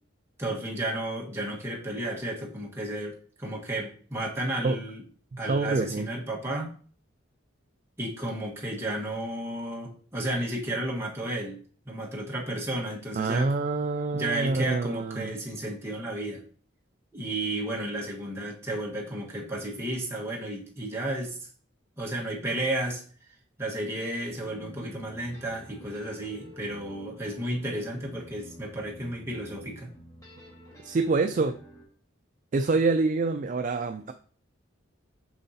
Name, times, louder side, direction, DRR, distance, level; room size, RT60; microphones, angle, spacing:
voice 1, 0.4-5.0 5.4-6.7 8.0-13.5 14.1-16.4 17.1-21.4 22.0-23.0 23.6-29.9, right 1 dB, 15° right, -3 dB, 1.4 m, -33 dB
voice 2, 5.5-6.1 13.2-15.3 30.8-31.5 32.5-34.1, right 3 dB, 40° right, 7 dB, 0.3 m, -26 dB
sound 1, 24.3-31.8, equal, 15° left, 1.6 m, -50 dB
7.0 x 5.4 x 2.8 m, 0.43 s
head